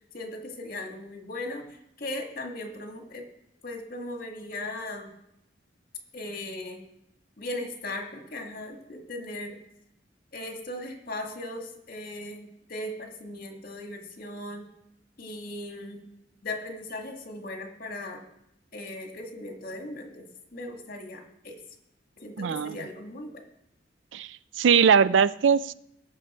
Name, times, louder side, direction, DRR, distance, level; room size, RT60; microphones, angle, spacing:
voice 1, 0.1-3.3 3.6-5.1 6.1-6.8 7.4-9.6 10.3-14.7 15.2-16.1 16.4-18.2 18.7-21.6 22.2-23.4, left 1 dB, 50° left, 3 dB, 2.0 m, -38 dB
voice 2, 22.4-22.8 24.1-25.7, right 6 dB, 80° right, 17 dB, 0.4 m, -21 dB
19.5 x 6.8 x 4.4 m, 0.81 s
head